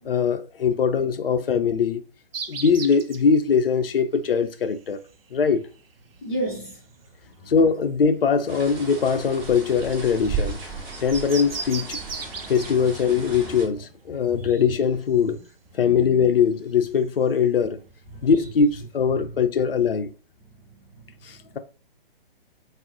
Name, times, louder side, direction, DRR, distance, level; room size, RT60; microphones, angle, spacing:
voice 1, 0.0-2.0 2.5-5.0 5.3-5.6 7.5-10.6 11.0-12.0 12.5-15.4 15.7-17.8 18.2-20.1 21.2-21.6, left 6 dB, 75° left, 0.5 m, -21 dB
sound 1, 2.3-19.0, right 5 dB, 75° right, 0.5 m, -41 dB
voice 2, 6.2-6.8 7.2-7.5 14.1-14.5 15.3-15.4 15.7-16.3 18.1-18.3 19.1-19.4 20.5-21.1, right 1 dB, 15° left, 0.6 m, -35 dB
sound 2, 8.5-13.7, right 5 dB, 20° right, 0.7 m, -34 dB
3.6 x 2.0 x 2.5 m
figure-of-eight pair, 130°, 29 cm